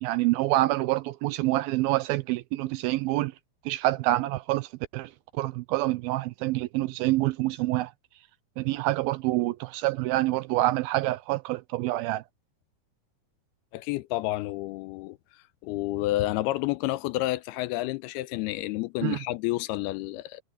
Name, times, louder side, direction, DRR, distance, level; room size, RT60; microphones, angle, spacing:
voice 1, 0.0-3.3 3.7-7.9 8.6-12.2 19.0-19.2, right 17 dB, 80° right, 2.2 m, -27 dB
voice 2, 13.7-15.2 15.6-20.4, left 17 dB, 85° left, 2.6 m, -30 dB
omnidirectional pair, 4.6 m